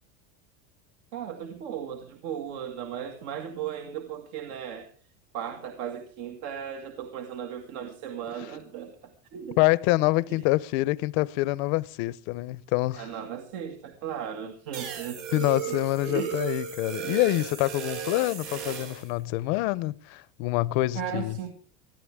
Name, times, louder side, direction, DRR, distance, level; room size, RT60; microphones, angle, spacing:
voice 1, 1.1-4.9 5.3-9.6 10.3-10.4 12.9-15.8 16.0-16.4 20.9-21.5, right 8 dB, 65° right, 2.0 m, -36 dB
voice 2, 9.6-13.0 15.3-21.4, left 19 dB, 55° left, 0.7 m, -26 dB
sound 1, 14.7-19.1, right 8 dB, 80° right, 5.6 m, -35 dB
20.0 x 14.0 x 3.6 m
cardioid pair, 160°, 36 cm